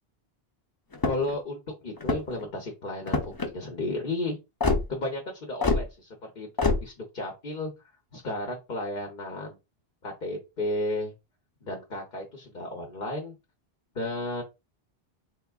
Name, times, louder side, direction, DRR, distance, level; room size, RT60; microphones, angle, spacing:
sound 1, 0.9-1.4 2.0-2.4 3.1-3.5 4.6-4.8 5.6-5.8 6.6-6.8, left 3 dB, 25° left, 0.5 m, -25 dB
voice 1, 1.0-4.4 4.9-6.5 6.8-7.7 8.1-9.6 10.0-11.1 11.6-13.3 13.9-14.4, left 2 dB, 55° left, 1 dB, 1.1 m, -33 dB
4.1 x 3.4 x 2.4 m, 0.25 s
omnidirectional pair, 1.0 m